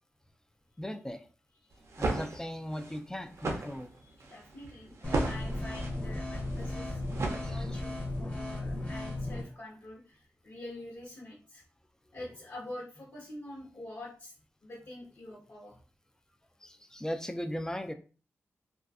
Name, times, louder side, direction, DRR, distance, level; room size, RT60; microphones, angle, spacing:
voice 1, 0.8-1.3 2.0-3.9 7.4-7.7 16.6-17.9, equal, 10° left, 8 dB, 0.3 m, -38 dB
sound 1, 1.7-8.0, right 2 dB, 65° right, 0.5 m, -36 dB
voice 2, 3.9-11.6 12.1-14.4 14.6-15.8, left 1 dB, 60° left, -5 dB, 0.9 m, -46 dB
sound 2, 5.0-9.4, left 1 dB, 25° left, 0.7 m, -35 dB
2.5 x 2.3 x 2.3 m, 0.37 s
cardioid pair, 70°, 5 cm